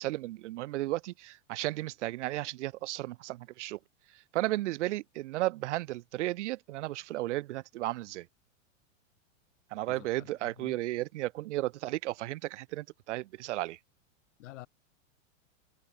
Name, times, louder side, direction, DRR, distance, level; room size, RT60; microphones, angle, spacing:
voice 1, 0.0-3.8 4.3-8.3 9.7-13.8, right 17 dB, 65° right, 1.6 m, -34 dB
voice 2, 9.9-10.7 14.4-14.7, left 16 dB, 70° left, 1.9 m, -49 dB
supercardioid pair, 150°, 38 cm